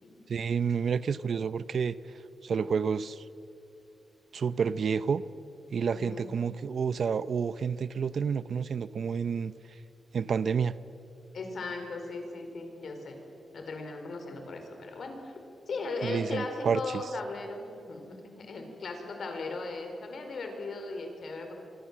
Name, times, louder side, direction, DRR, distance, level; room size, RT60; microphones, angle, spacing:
voice 1, 0.3-2.0 2.4-3.2 4.3-5.2 5.7-9.5 10.1-10.7 16.0-17.0, right 6 dB, 60° right, 16 dB, 0.7 m, -29 dB
voice 2, 5.9-6.3 11.3-13.2 13.5-15.3 15.7-21.5, left 3 dB, 60° left, 4 dB, 4.6 m, -37 dB
25.5 x 24.5 x 7.5 m, 2.8 s
wide cardioid pair, 125°, 0 cm